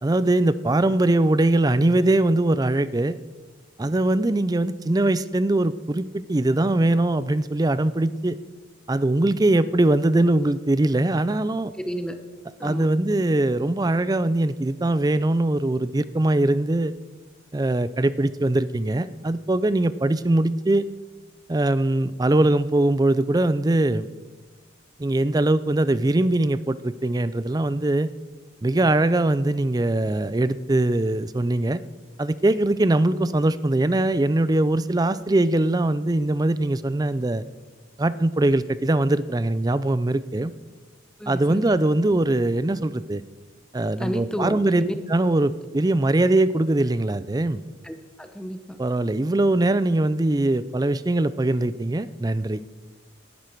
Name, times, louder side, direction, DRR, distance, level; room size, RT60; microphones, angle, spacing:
voice 1, 0.0-3.2 3.8-8.4 8.9-11.7 12.6-16.9 17.5-20.8 21.5-24.1 25.0-28.1 28.6-31.8 32.2-37.4 38.0-40.5 41.3-43.2 43.7-47.6 48.8-52.6, right 2 dB, 20° right, 15 dB, 0.4 m, -21 dB
voice 2, 11.7-12.2 12.6-12.9 41.2-41.6 44.0-44.9 47.8-48.8, equal, 5° left, 7 dB, 0.8 m, -31 dB
19.0 x 11.5 x 4.6 m, 1.3 s
head